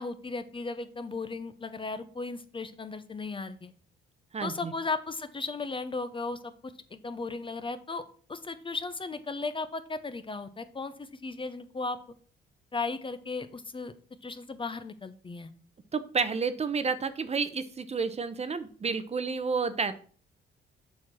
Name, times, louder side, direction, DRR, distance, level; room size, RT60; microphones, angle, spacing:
voice 1, 0.0-3.7 4.4-8.0 8.3-12.0 12.7-13.9 14.2-15.5, left 3 dB, 25° left, 11 dB, 0.7 m, -36 dB
voice 2, 4.3-4.7 15.9-19.9, right 5 dB, 30° right, 12 dB, 0.8 m, -30 dB
7.2 x 4.4 x 6.1 m, 0.43 s
cardioid pair, 90°, 20 cm